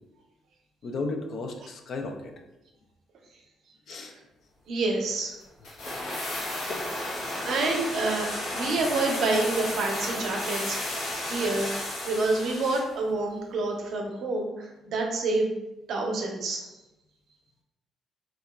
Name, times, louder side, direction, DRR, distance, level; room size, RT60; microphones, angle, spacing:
voice 1, 0.8-2.3 3.9-4.2 5.8-6.0 6.7-6.8, left 3 dB, 60° left, 4 dB, 0.4 m, -34 dB
voice 2, 4.7-5.3 7.4-8.3 8.5-10.9 11.3-15.6 15.9-16.7, right 3 dB, 70° right, 1 dB, 0.5 m, -28 dB
sound 1, 5.6-12.9 13.2-13.3, left 1 dB, 85° left, 0.9 m, -33 dB
2.9 x 2.3 x 2.2 m, 0.96 s
cardioid pair, 90°, 0 cm